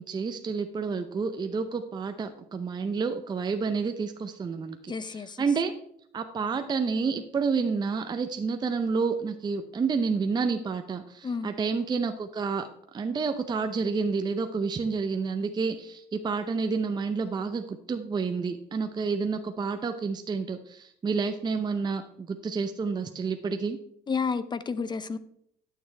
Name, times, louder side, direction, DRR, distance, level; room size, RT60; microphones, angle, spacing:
voice 1, 0.0-5.7 6.1-23.8, right 5 dB, 25° right, 7 dB, 0.6 m, -29 dB
voice 2, 4.9-5.4 11.2-11.5 24.1-25.2, left 5 dB, 25° left, 15 dB, 0.6 m, -31 dB
11.5 x 6.8 x 3.3 m, 0.71 s
cardioid pair, 110°, 17 cm